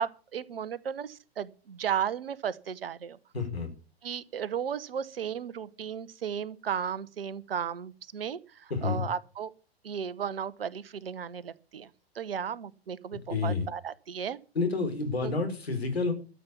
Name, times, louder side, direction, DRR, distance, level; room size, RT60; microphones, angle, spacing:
voice 1, 0.0-3.2 4.0-9.5 9.8-11.9 12.1-14.4 15.2-15.3, right 8 dB, 65° right, 1.0 m, -34 dB
voice 2, 3.3-3.7 8.7-9.0 13.3-13.7 14.5-16.1, left 4 dB, 70° left, 4.6 m, -29 dB
13.0 x 7.2 x 8.4 m
figure-of-eight pair, 115°, 32 cm